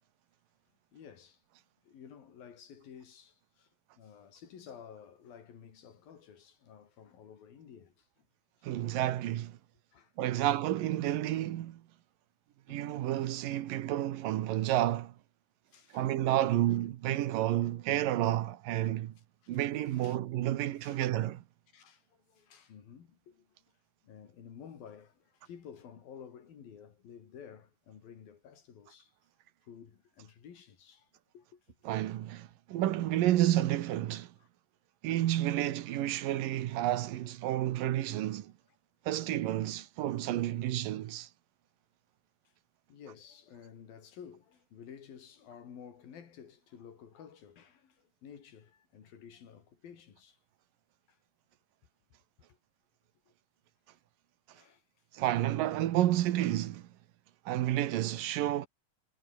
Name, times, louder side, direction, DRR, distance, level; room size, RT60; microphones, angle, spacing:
voice 1, 0.9-1.4 1.8-3.7 4.0-8.3 8.7-8.8 9.1-9.3 9.9-10.5 12.7-13.1 15.7-16.1 18.2-18.3 19.4-20.2 20.8-21.1 21.7-23.6 24.0-29.1 29.6-31.7 34.4-34.5 35.2-35.5 42.4-42.5 42.9-50.4 51.1-51.2 52.5-52.6 53.3-53.4 54.5-54.8, left 7 dB, 85° left, 5.0 m, -53 dB
voice 2, 8.6-9.5 10.2-11.8 12.7-15.1 15.9-19.1 19.5-21.4 31.9-34.3 35.0-38.5 39.1-41.3 55.1-56.9 57.5-58.7, right 13 dB, 75° right, 2.8 m, -30 dB
omnidirectional pair, 4.0 m